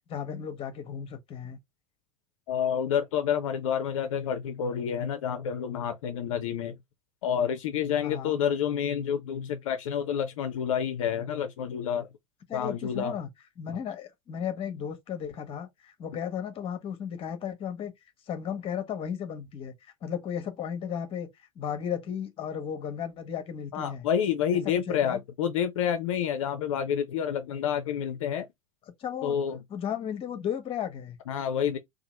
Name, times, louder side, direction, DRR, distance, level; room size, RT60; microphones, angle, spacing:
voice 1, 0.1-1.6 8.0-8.4 12.5-13.3 13.6-17.9 18.3-19.7 20.0-21.3 21.6-24.1 24.6-25.2 29.0-29.3 29.7-31.2, left 8 dB, 30° left, 0.8 m, -34 dB
voice 2, 2.5-6.7 7.2-12.1 12.5-13.2 23.7-28.5 29.2-29.6 31.3-31.8, left 8 dB, 65° left, 0.4 m, -29 dB
2.8 x 2.4 x 2.9 m
figure-of-eight pair, 75°, 18 cm